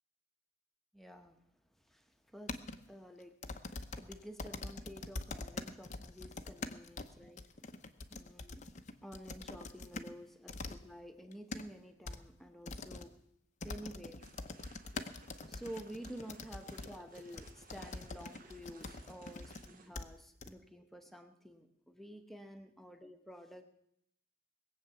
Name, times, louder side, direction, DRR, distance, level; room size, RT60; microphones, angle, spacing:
voice 1, 0.9-1.4 1.9-2.0 2.3-2.6 2.9-7.4 8.1-8.6 9.0-13.1 13.6-14.2 15.5-23.6, equal, ahead, 6 dB, 1.1 m, -51 dB
sound 1, 2.5-2.8 3.4-10.1 10.5-10.8 11.2-11.6 12.1-12.2 12.7-13.1 13.6-19.7 20.0-20.1 20.4-20.5, left 3 dB, 35° left, 0.8 m, -44 dB
sound 2, 14.2-19.9, right 3 dB, 45° right, 1.6 m, -59 dB
20.5 x 8.2 x 7.0 m, 0.74 s
head